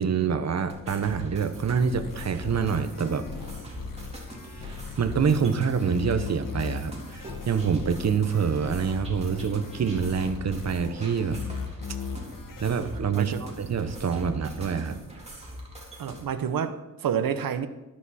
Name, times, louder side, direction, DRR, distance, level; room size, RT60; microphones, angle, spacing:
voice 1, 0.0-3.2 4.6-4.7 5.0-11.4 12.6-15.1, right 6 dB, 50° right, 1.1 m, -26 dB
sound 1, 0.7-16.2, equal, 20° right, 3.7 m, -41 dB
sound 2, 1.9-12.7, left 6 dB, 70° left, 1.7 m, -39 dB
voice 2, 13.2-13.5 14.3-14.4 16.0-17.7, right 8 dB, 80° right, 1.0 m, -29 dB
13.5 x 12.5 x 4.3 m
wide cardioid pair, 115°, 34 cm